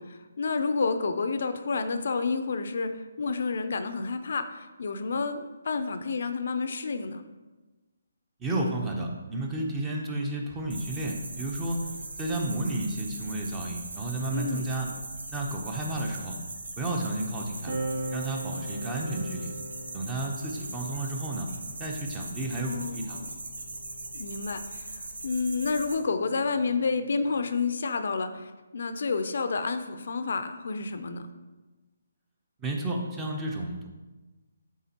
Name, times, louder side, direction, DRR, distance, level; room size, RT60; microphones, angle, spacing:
voice 1, 0.0-7.2 14.3-14.7 22.5-23.3 24.1-31.3, left 4 dB, 60° left, 9 dB, 0.4 m, -30 dB
voice 2, 8.4-11.9 12.2-14.9 15.3-16.4 16.8-17.8 18.1-19.5 19.9-21.5 21.8-23.2 32.6-33.9, right 2 dB, 10° right, 0 dB, 0.6 m, -32 dB
sound 1, 10.7-25.9, right 2 dB, 90° right, 1.0 m, -40 dB
sound 2, 17.7-24.6 25.6-27.4, right 1 dB, 70° right, 1.5 m, -41 dB
9.3 x 3.6 x 2.9 m, 1.2 s
hypercardioid pair, 165°, 0 cm